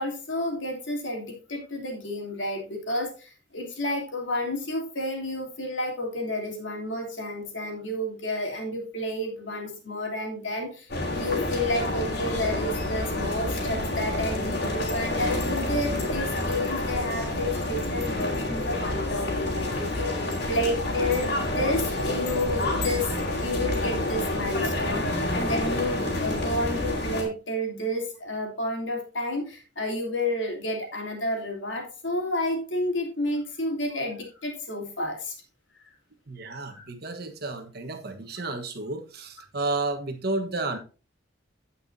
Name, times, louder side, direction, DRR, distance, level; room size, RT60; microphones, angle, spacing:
voice 1, 0.0-23.1 23.4-35.3 36.7-36.9, left 1 dB, 75° left, 3.0 m, -30 dB
sound 1, 10.9-27.2, left 1 dB, 55° left, 3.1 m, -28 dB
voice 2, 36.3-40.8, right 2 dB, 55° right, 1.3 m, -32 dB
16.0 x 5.8 x 2.7 m
head